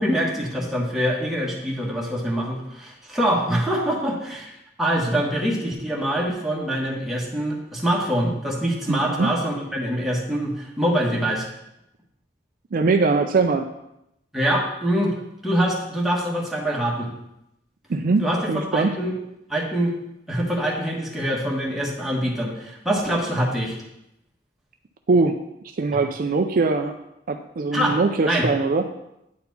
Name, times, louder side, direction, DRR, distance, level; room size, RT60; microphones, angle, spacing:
voice 1, 0.0-11.5 14.3-15.1 15.4-17.1 18.2-19.1 19.5-19.9 20.3-23.8 27.7-28.0 28.3-28.5, equal, ahead, -4 dB, 1.3 m, -24 dB
voice 2, 8.9-9.3 12.7-13.7 17.9-18.2 18.5-18.9 25.1-25.3 25.8-26.9 27.3-28.8, right 3 dB, 50° right, 6 dB, 0.4 m, -21 dB
9.4 x 4.4 x 4.0 m, 0.84 s
head